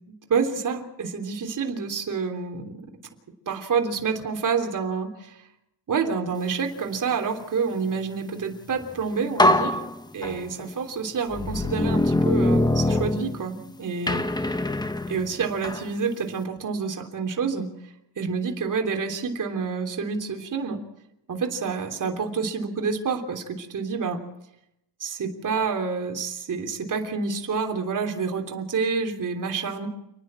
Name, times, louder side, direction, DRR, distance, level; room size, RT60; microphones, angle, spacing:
voice 1, 0.3-2.8 3.5-5.4 5.9-9.8 10.1-14.5 15.1-17.7 18.2-20.8 21.3-24.2 25.0-29.9, right 5 dB, 45° right, 3 dB, 3.3 m, -28 dB
sound 1, 8.8-8.9 9.4-10.7 11.3-13.7 14.1-15.9, left 1 dB, 10° left, 1.0 m, -23 dB
29.5 x 10.0 x 8.9 m, 0.83 s
cardioid pair, 110°, 43 cm